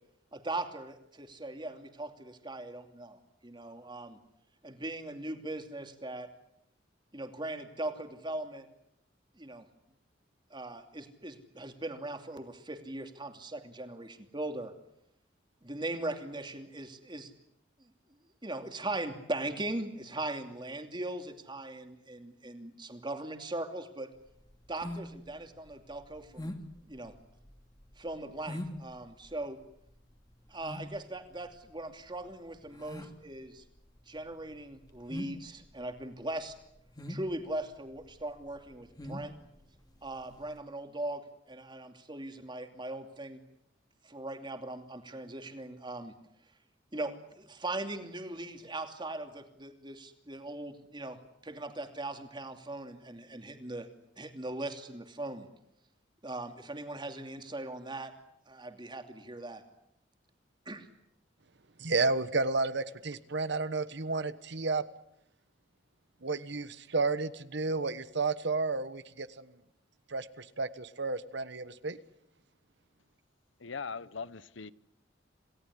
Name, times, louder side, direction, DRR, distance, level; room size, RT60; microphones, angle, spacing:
voice 1, 0.3-4.2 4.6-6.3 7.1-8.7 9.4-9.7 10.5-14.7 15.6-17.3 17.8-17.9 18.4-24.1 24.7-26.6 26.9-27.2 28.0-29.6 30.5-33.6 34.1-36.5 37.1-39.4 40.0-43.4 44.0-46.2 46.9-53.9 54.2-55.5 56.2-58.1 58.5-59.6 60.7-60.9, right 2 dB, 25° right, 6 dB, 2.8 m, -39 dB
sound 1, 24.2-40.5, left 1 dB, 20° left, 2.6 m, -45 dB
voice 2, 61.8-64.8 66.2-69.5 70.1-72.0, right 3 dB, 65° right, 13 dB, 1.3 m, -32 dB
voice 3, 73.6-74.7, left 5 dB, 80° left, 17 dB, 1.0 m, -40 dB
28.0 x 18.0 x 9.9 m, 0.79 s
head